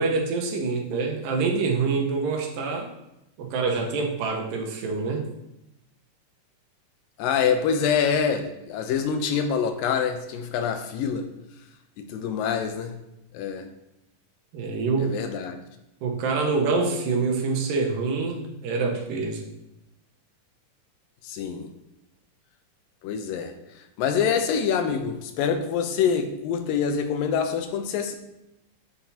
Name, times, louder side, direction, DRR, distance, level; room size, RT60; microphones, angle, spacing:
voice 1, 0.0-2.9 3.4-5.2 14.5-15.1 16.0-19.5, right 4 dB, 80° right, 1 dB, 2.7 m, -26 dB
voice 2, 7.2-11.3 12.0-13.0 13.3-13.7 15.0-15.6 21.2-21.7 23.0-23.5 24.0-28.2, left 7 dB, 85° left, 6 dB, 2.4 m, -25 dB
9.9 x 5.7 x 2.8 m, 0.89 s
omnidirectional pair, 3.9 m